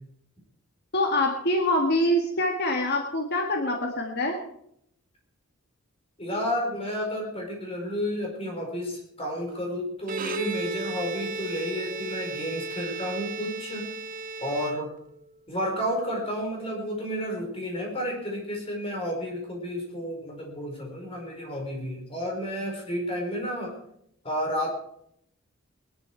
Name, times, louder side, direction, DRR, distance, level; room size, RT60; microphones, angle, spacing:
voice 1, 0.9-4.4, left 1 dB, 50° left, 2 dB, 1.9 m, -25 dB
voice 2, 6.2-13.9 14.4-14.9 15.5-23.7 24.2-24.7, equal, 30° left, 0 dB, 4.9 m, -31 dB
Bowed string instrument, 10.0-15.3, right 4 dB, 40° right, 0.9 m, -35 dB
20.0 x 11.5 x 4.7 m, 0.71 s
head